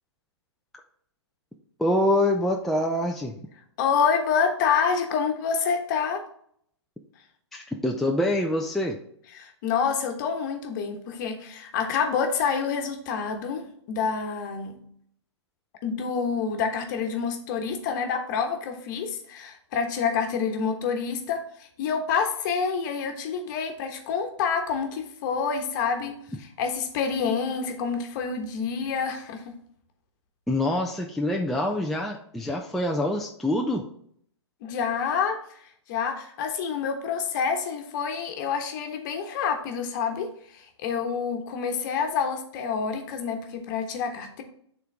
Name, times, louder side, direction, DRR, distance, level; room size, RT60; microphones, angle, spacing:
voice 1, 1.8-3.3 7.5-9.0 30.5-33.8, left 1 dB, ahead, 0 dB, 0.4 m, -25 dB
voice 2, 3.8-6.2 9.3-13.6 13.9-14.8 15.8-29.5 34.6-44.4, left 6 dB, 40° left, 5 dB, 1.2 m, -28 dB
9.1 x 3.9 x 3.5 m, 0.65 s
hypercardioid pair, 125°, 15 cm